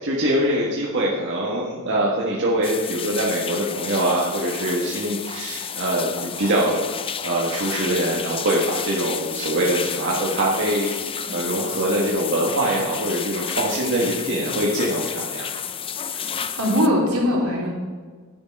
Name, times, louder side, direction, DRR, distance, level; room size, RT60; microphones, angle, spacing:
voice 1, 0.0-6.9 7.2-10.9 11.3-15.5, right 1 dB, 55° right, -4 dB, 1.5 m, -23 dB
sound 1, 2.6-16.9, left 7 dB, 25° left, 0.4 m, -31 dB
voice 2, 16.1-17.7, left 1 dB, 90° right, -4 dB, 3.6 m, -22 dB
10.5 x 7.2 x 5.3 m, 1.5 s
head